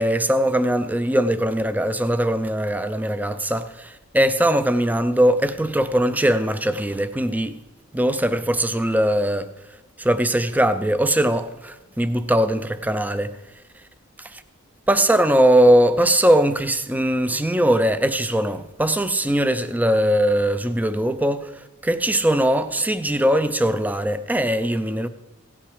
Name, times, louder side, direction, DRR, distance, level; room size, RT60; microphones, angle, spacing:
voice 1, 0.0-7.6 7.9-9.5 10.0-13.3 14.2-14.4 14.9-25.1, right 1 dB, 5° right, 0.5 m, -20 dB
16.5 x 8.8 x 4.9 m
head